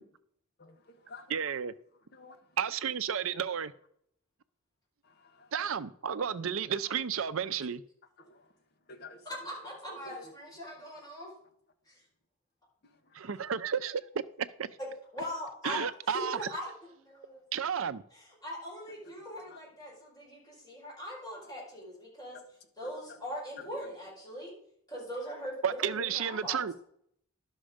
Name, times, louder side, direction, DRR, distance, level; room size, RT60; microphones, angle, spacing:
voice 1, 0.6-1.3 2.1-2.4 5.0-5.5 8.2-8.4 8.9-9.2 10.1-10.3 12.8-13.0 13.2-13.3 19.5-19.6, left 3 dB, 50° left, 1.2 m, -51 dB
voice 2, 1.3-1.7 2.6-3.7 5.5-7.8 13.1-14.0 14.4-14.7 15.6-16.5 17.5-18.0 25.6-26.7, right 7 dB, 70° right, 0.5 m, -32 dB
voice 3, 9.2-11.3 11.9-12.0 15.1-15.8 16.1-16.7 17.0-17.4 18.1-22.4 22.8-24.5 24.9-26.7, equal, 20° left, 4.6 m, -41 dB
11.5 x 6.3 x 5.0 m
head